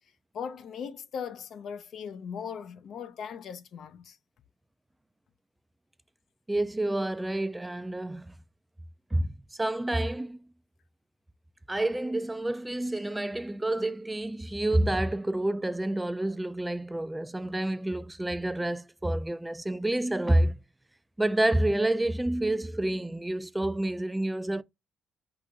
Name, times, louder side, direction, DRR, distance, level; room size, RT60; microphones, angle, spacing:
voice 1, 0.3-4.2, left 7 dB, 65° left, 0.5 m, -39 dB
voice 2, 6.5-8.3 9.1-9.3 9.6-10.4 11.7-20.6 21.2-24.6, right 1 dB, 10° right, 0.3 m, -28 dB
4.8 x 2.5 x 3.8 m
cardioid pair, 90°, 0 cm